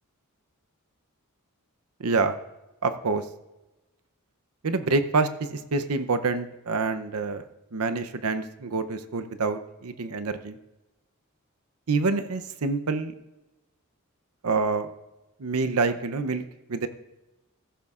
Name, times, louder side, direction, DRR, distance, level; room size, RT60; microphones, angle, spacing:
voice 1, 2.0-2.4 2.8-3.2 4.6-7.5 7.7-10.6 11.9-13.1 14.4-14.9 15.4-16.9, right 3 dB, 80° right, 9 dB, 0.7 m, -27 dB
14.5 x 14.0 x 2.5 m, 1.0 s
head